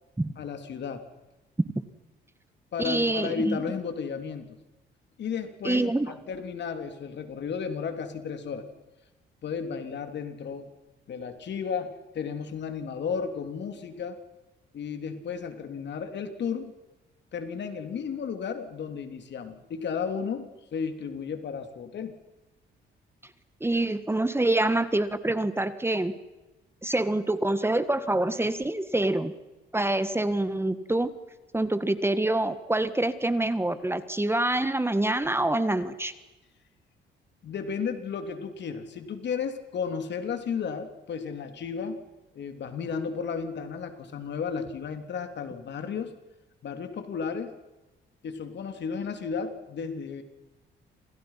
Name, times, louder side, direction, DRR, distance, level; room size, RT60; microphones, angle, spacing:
voice 1, 0.4-1.1 2.7-4.6 5.2-8.7 9.4-10.7 11.1-14.2 14.7-16.7 17.3-22.1 37.4-42.0 42.3-46.1 46.6-47.5 48.2-50.2, left 6 dB, 60° left, 7 dB, 3.5 m, -33 dB
voice 2, 2.8-3.6 5.6-6.1 23.6-26.1 26.8-29.3 29.7-31.1 31.5-36.1, right 2 dB, 10° right, 12 dB, 1.7 m, -26 dB
29.5 x 27.0 x 5.9 m, 1.1 s
cardioid pair, 90°, 20 cm